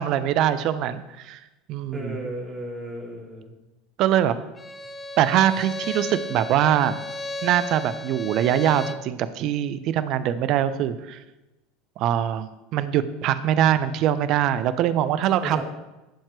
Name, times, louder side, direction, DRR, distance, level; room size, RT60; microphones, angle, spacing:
voice 1, 0.0-1.4 1.7-2.2 4.0-4.4 5.2-7.0 7.4-11.2 12.0-15.6, right 11 dB, 50° right, 13 dB, 0.7 m, -23 dB
voice 2, 1.9-3.5 15.4-15.6, right 1 dB, 20° right, -2 dB, 3.5 m, -34 dB
Bowed string instrument, 4.6-9.1, left 1 dB, 20° left, 0.6 m, -34 dB
15.0 x 7.3 x 3.2 m, 1.0 s
figure-of-eight pair, 75°, 0 cm